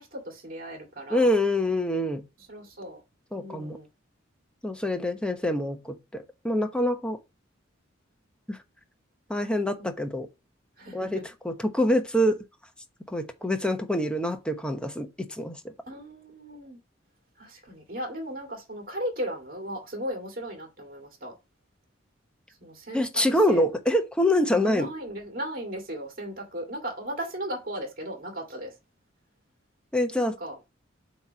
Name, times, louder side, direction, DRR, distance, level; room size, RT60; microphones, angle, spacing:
voice 1, 0.0-1.3 2.5-3.0 3.4-3.9 9.8-9.9 10.8-11.2 15.8-16.8 17.4-21.4 22.6-23.6 24.6-28.7 30.2-30.6, equal, 45° right, 2.3 m, -36 dB
voice 2, 1.1-2.2 3.3-3.8 4.6-7.2 8.5-8.6 9.3-10.3 10.9-12.4 13.1-15.7 22.9-24.9 29.9-30.4, left 1 dB, 5° left, 1.0 m, -25 dB
7.9 x 3.1 x 5.6 m
head